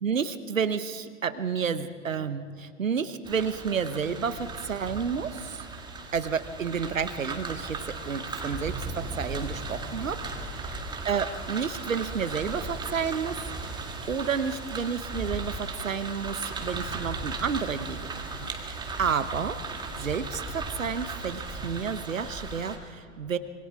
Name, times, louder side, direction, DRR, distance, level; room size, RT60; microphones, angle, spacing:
voice 1, 0.0-5.7 6.1-10.2 10.5-10.8 11.0-13.7 14.1-19.6 20.0-23.4, right 6 dB, 75° right, 12 dB, 1.0 m, -31 dB
sound 1, 3.3-22.8, right 3 dB, 10° right, 1.8 m, -36 dB
25.5 x 22.5 x 4.7 m, 2.3 s
figure-of-eight pair, 105°, 40 cm